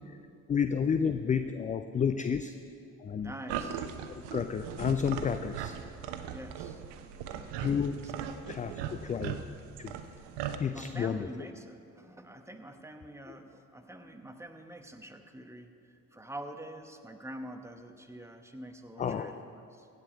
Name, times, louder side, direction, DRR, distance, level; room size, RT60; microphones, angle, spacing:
voice 1, 0.5-2.5 3.0-3.3 4.1-5.7 7.6-8.0 8.5-9.4 9.8-10.0 10.6-11.3 13.3-13.4 19.0-19.4, left 7 dB, 20° left, 9 dB, 0.4 m, -31 dB
voice 2, 3.2-3.8 6.3-6.8 8.0-8.1 10.7-19.9, right 1 dB, 5° right, 6 dB, 1.1 m, -46 dB
sound 1, 3.5-10.6, right 8 dB, 65° right, 0.9 m, -39 dB
15.5 x 5.3 x 8.0 m, 2.5 s
hypercardioid pair, 60°, 44 cm